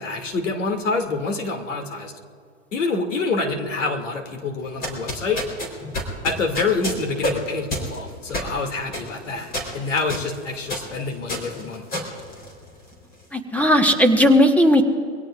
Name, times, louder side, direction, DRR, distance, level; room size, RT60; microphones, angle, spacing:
voice 1, 0.0-2.1 2.7-5.4 6.2-11.8, left 3 dB, 80° left, 3 dB, 2.6 m, -26 dB
sound 1, 4.6-13.0, equal, 25° left, 4.1 m, -31 dB
voice 2, 13.3-14.8, equal, 5° left, 5 dB, 1.3 m, -16 dB
24.0 x 17.5 x 2.5 m, 2.3 s
hypercardioid pair, 125°, 37 cm